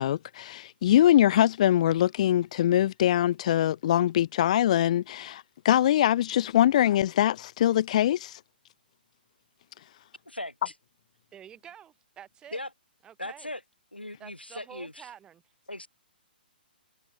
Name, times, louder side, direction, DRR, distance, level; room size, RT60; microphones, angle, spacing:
voice 1, 0.0-8.4, left 12 dB, 40° left, 0.4 m, -23 dB
voice 2, 11.3-12.6 13.0-13.5 14.2-15.4, right 9 dB, 15° right, 3.3 m, -48 dB
voice 3, 13.2-13.6 13.9-15.1 15.7-15.9, left 1 dB, 90° left, 2.5 m, -38 dB
figure-of-eight pair, 125°, 5 cm